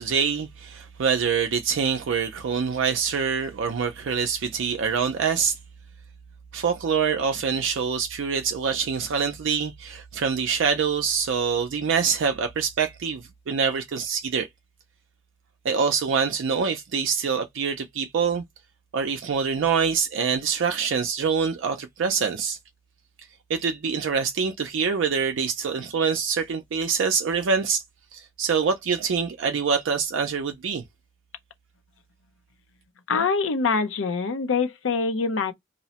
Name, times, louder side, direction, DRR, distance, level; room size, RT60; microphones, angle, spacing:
voice 1, 0.0-5.6 6.5-14.5 15.6-18.4 18.9-22.6 23.5-27.8 28.1-30.8, right 6 dB, 80° right, 0.4 m, -25 dB
voice 2, 33.1-35.5, left 4 dB, 85° left, 0.6 m, -24 dB
2.6 x 2.1 x 2.7 m
head